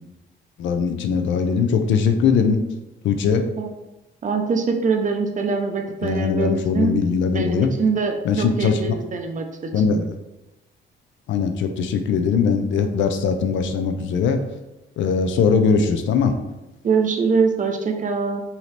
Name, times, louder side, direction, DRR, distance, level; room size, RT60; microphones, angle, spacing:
voice 1, 0.6-2.6 3.0-3.5 6.0-7.7 8.2-8.8 9.7-10.1 11.3-14.4 15.0-16.3, left 5 dB, 75° left, 7 dB, 0.4 m, -20 dB
voice 2, 4.2-7.0 7.3-10.0 16.8-18.4, right 5 dB, 40° right, 4 dB, 0.5 m, -23 dB
2.8 x 2.8 x 3.2 m, 0.98 s
cardioid pair, 90°, 20 cm